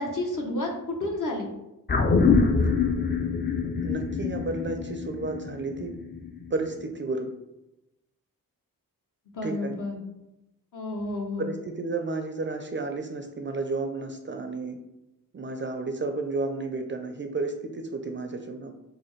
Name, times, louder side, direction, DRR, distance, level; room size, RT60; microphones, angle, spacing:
voice 1, 0.0-1.5 9.3-10.0 10.7-11.5, left 2 dB, 60° left, 0 dB, 0.9 m, -31 dB
sound 1, 1.9-6.5 6.8-6.9, left 4 dB, 30° left, 0.4 m, -25 dB
voice 2, 3.8-5.9 6.5-7.3 9.4-9.8 11.4-14.8 15.3-18.7, right 3 dB, 35° right, 5 dB, 0.4 m, -32 dB
4.1 x 2.2 x 3.1 m, 0.91 s
cardioid pair, 55°, 35 cm